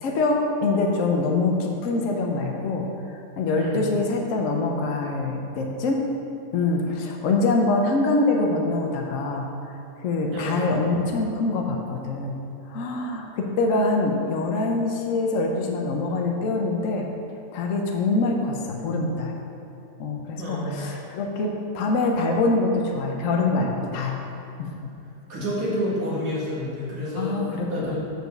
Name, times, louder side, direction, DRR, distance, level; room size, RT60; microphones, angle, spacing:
voice 1, 0.0-2.9 3.4-6.0 6.5-9.4 10.0-12.4 12.7-17.1 17.5-19.3 20.0-24.2 24.6-24.9 27.2-28.0, left 3 dB, 60° left, 1 dB, 1.1 m, -24 dB
voice 2, 10.3-10.8 20.4-21.0 25.3-28.0, equal, 65° right, -8 dB, 2.3 m, -29 dB
6.4 x 5.1 x 6.5 m, 2.6 s
omnidirectional pair, 1.6 m